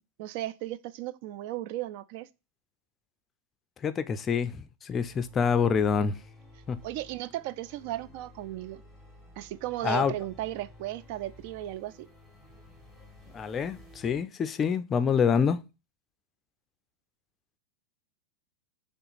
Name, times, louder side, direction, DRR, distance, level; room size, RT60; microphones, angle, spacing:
voice 1, 0.2-2.3 6.8-8.8 9.4-12.1, right 14 dB, 55° right, 0.3 m, -35 dB
voice 2, 3.8-6.1 6.7-6.8 9.8-10.1 13.3-15.6, left 6 dB, 25° left, 0.4 m, -26 dB
sound 1, 5.0-14.2, left 1 dB, 15° right, 1.5 m, -53 dB
3.4 x 2.8 x 4.0 m
hypercardioid pair, 120°, 0 cm